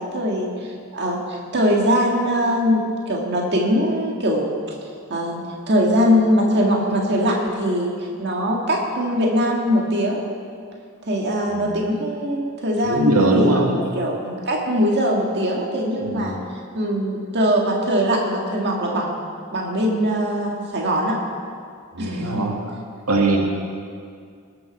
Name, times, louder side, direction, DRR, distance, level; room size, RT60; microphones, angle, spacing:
voice 1, 0.0-4.5 5.1-10.2 11.1-16.3 16.7-19.2 19.5-21.2 22.0-22.4, equal, 50° right, -1 dB, 1.8 m, -21 dB
voice 2, 12.8-13.8 16.0-16.3 21.9-22.6 23.1-23.4, right 2 dB, 80° right, 0 dB, 1.9 m, -20 dB
19.5 x 7.7 x 6.4 m, 2.2 s
head